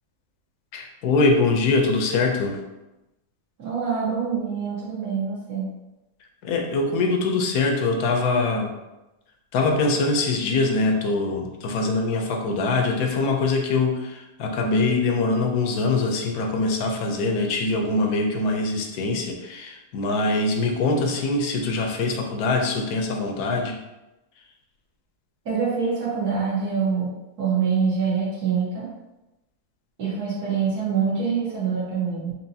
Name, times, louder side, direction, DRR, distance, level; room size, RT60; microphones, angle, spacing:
voice 1, 0.7-2.6 6.4-8.8 9.5-23.8, left 3 dB, 80° left, 3 dB, 1.1 m, -23 dB
voice 2, 3.6-5.7 25.4-27.1 27.4-28.9 30.0-32.3, right 6 dB, 70° right, -8 dB, 1.6 m, -25 dB
4.6 x 2.8 x 2.7 m, 0.98 s
omnidirectional pair, 1.7 m